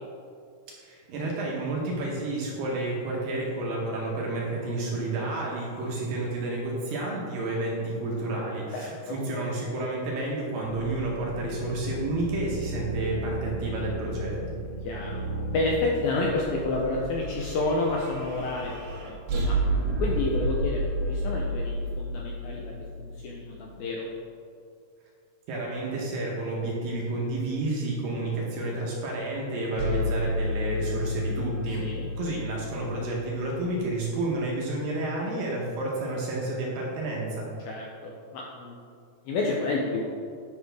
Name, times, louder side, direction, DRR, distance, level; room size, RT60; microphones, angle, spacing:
voice 1, 0.8-14.6 25.5-31.9 32.2-37.5, right 2 dB, 70° right, -3 dB, 2.4 m, -30 dB
voice 2, 8.7-9.2 14.8-15.3 15.5-18.7 19.0-24.1 31.8-32.1 37.7-38.8 39.3-40.0, left 2 dB, 80° left, -2 dB, 2.1 m, -30 dB
sound 1, 10.6-15.8, right 1 dB, 60° left, 2.8 m, -35 dB
Space Laser, 16.2-23.5 29.8-33.9, equal, 85° right, 3.5 m, -31 dB
10.0 x 5.3 x 3.4 m, 2.3 s
omnidirectional pair, 4.8 m